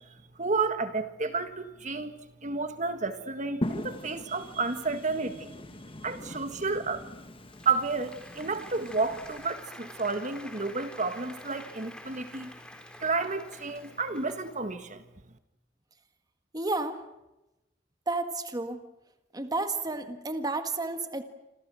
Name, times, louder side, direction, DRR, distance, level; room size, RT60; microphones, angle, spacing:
voice 1, 0.4-5.5 6.0-7.1 7.7-12.5 13.0-15.0, right 4 dB, 40° right, 9 dB, 1.8 m, -31 dB
sound 1, 3.6-9.5, left 1 dB, 30° left, 1.2 m, -40 dB
Applause, 7.2-14.8, left 1 dB, 5° left, 4.4 m, -48 dB
voice 2, 16.5-17.0 18.1-18.9 19.3-21.2, right 2 dB, 20° right, 8 dB, 1.7 m, -31 dB
27.5 x 27.5 x 6.3 m, 0.96 s
head